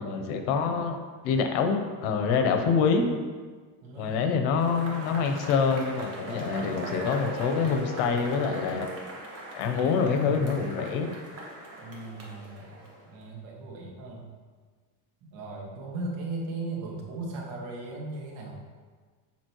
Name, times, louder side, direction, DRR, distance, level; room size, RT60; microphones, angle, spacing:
voice 1, 0.0-3.1 4.0-8.9 9.5-11.1, left 5 dB, 90° left, 5 dB, 1.0 m, -26 dB
voice 2, 3.8-4.2 11.8-14.3 15.2-18.5, right 2 dB, 70° right, -2 dB, 1.7 m, -37 dB
Cheering / Applause / Crowd, 4.5-13.2, right 1 dB, 30° right, 1.2 m, -40 dB
7.4 x 5.2 x 3.0 m, 1.5 s
cardioid pair, 150°, 49 cm